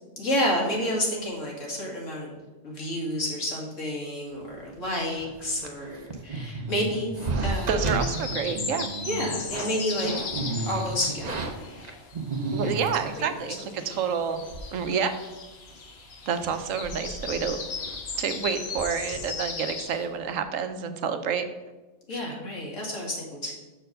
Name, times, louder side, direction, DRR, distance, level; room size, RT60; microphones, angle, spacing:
voice 1, 0.2-2.4 2.6-8.0 9.1-10.4 10.7-11.4 12.6-13.3 22.1-23.5, left 1 dB, 70° left, -2 dB, 2.3 m, -30 dB
sound 1, 5.2-13.2 13.9-14.0 14.2-14.9 15.1-15.2 15.7-16.0 16.4-19.9 20.1-20.4, right 2 dB, 40° right, 0.7 m, -33 dB
voice 2, 7.7-8.9 12.5-13.6 13.8-14.4 14.7-15.1 16.3-17.6 18.2-21.4 22.1-22.2, right 6 dB, 80° right, 9 dB, 1.1 m, -28 dB
sound 2, 8.0-12.3 12.6-20.1, left 4 dB, 55° left, 1.1 m, -37 dB
6.5 x 4.5 x 6.5 m, 1.2 s
omnidirectional pair, 1.3 m